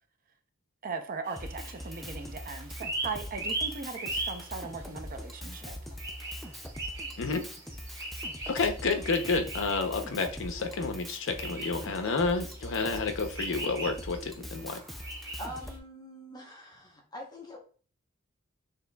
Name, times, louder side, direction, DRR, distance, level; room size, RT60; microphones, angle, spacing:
voice 1, 0.8-5.8, right 4 dB, 40° right, 0.6 m, -39 dB
sound 1, 1.2-15.7, right 2 dB, 15° right, 1.7 m, -40 dB
Drum kit, 1.4-15.8, equal, ahead, 0.4 m, -43 dB
voice 2, 8.5-14.8, left 4 dB, 60° left, 0.7 m, -30 dB
voice 3, 15.4-17.6, equal, 20° left, 0.9 m, -44 dB
6.5 x 2.9 x 2.3 m
head